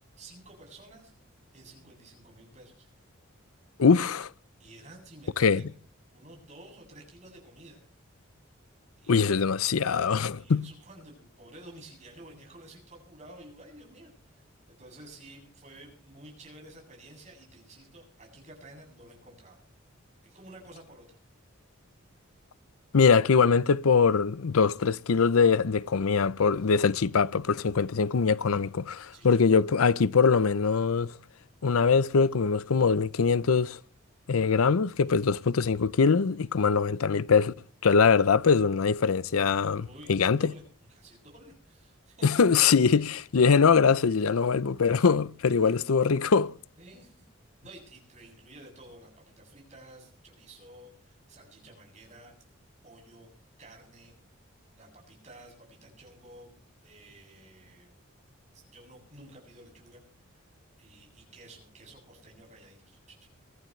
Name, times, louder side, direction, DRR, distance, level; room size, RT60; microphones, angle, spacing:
voice 1, 0.2-1.1 1.5-2.9 4.6-5.7 6.1-7.8 9.0-9.5 10.3-19.6 20.2-21.2 29.1-29.4 36.5-36.8 39.8-40.6 40.9-42.3 45.5-45.7 46.8-47.2 47.6-52.3 52.8-53.3 53.6-54.1 54.7-56.5 56.8-57.9 58.5-60.4 60.8-63.3, right 1 dB, 35° right, 7.9 m, -52 dB
voice 2, 3.8-4.3 5.4-5.6 9.1-10.6 22.9-31.1 31.6-33.8 34.3-37.5 37.8-40.5 42.2-46.6, left 5 dB, 85° left, 0.6 m, -23 dB
24.0 x 14.5 x 3.2 m
head